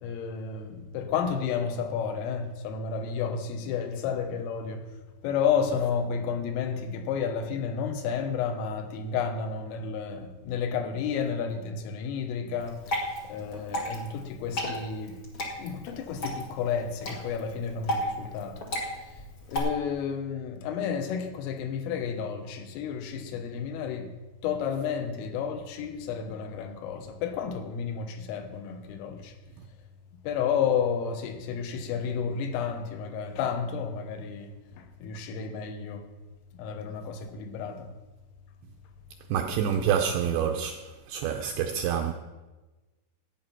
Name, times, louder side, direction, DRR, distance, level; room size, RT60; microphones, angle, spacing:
voice 1, 0.0-4.9 5.2-12.9 13.2-15.2 15.6-18.6 19.0-19.2 19.5-24.1 24.4-29.4 30.2-36.1 36.5-37.9, left 7 dB, 90° left, 3.7 m, -31 dB
Water / Drip, 12.6-19.6, equal, 70° left, 1.2 m, -34 dB
voice 2, 39.3-40.8 41.1-42.1, right 8 dB, 85° right, 2.5 m, -27 dB
13.5 x 9.0 x 5.7 m
omnidirectional pair, 5.7 m